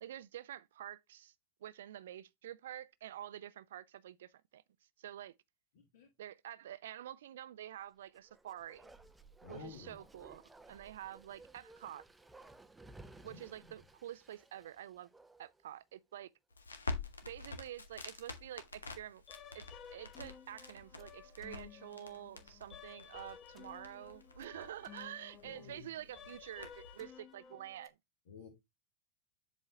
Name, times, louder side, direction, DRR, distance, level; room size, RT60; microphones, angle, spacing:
voice 1, 0.0-1.3 1.6-5.3 6.2-8.9 9.5-12.1 13.2-15.1 15.4-16.3 17.2-19.2 19.5-28.0, right 12 dB, 60° right, 0.4 m, -48 dB
voice 2, 5.8-6.1 9.4-10.0 13.2-13.7 25.4-25.9 28.3-28.5, left 5 dB, 55° left, 1.8 m, -52 dB
Bark, 8.1-15.7 16.0-16.1, right 2 dB, 10° right, 0.6 m, -58 dB
Crackle, 16.5-27.0, left 3 dB, 75° left, 1.1 m, -48 dB
sound 1, 19.3-27.9, left 8 dB, 25° left, 0.9 m, -55 dB
7.5 x 4.3 x 3.5 m
figure-of-eight pair, 90°, 0 cm